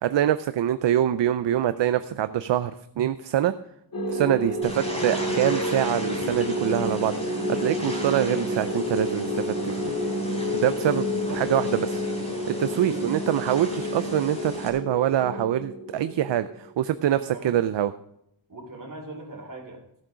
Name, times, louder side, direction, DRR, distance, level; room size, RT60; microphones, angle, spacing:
voice 1, 0.0-2.7 3.0-3.5 4.1-9.3 9.6-9.7 10.5-12.0 12.6-17.9, right 11 dB, 65° right, 12 dB, 0.5 m, -24 dB
sound 1, 3.9-16.7, left 1 dB, 45° left, 2.9 m, -30 dB
sound 2, 4.6-14.7, right 1 dB, 15° left, 3.9 m, -36 dB
voice 2, 11.0-11.5 12.2-12.3 12.7-13.1 17.1-17.6 18.5-20.0, right 2 dB, 40° right, 1 dB, 3.1 m, -41 dB
15.5 x 7.6 x 5.0 m, 0.76 s
wide cardioid pair, 160°, 47 cm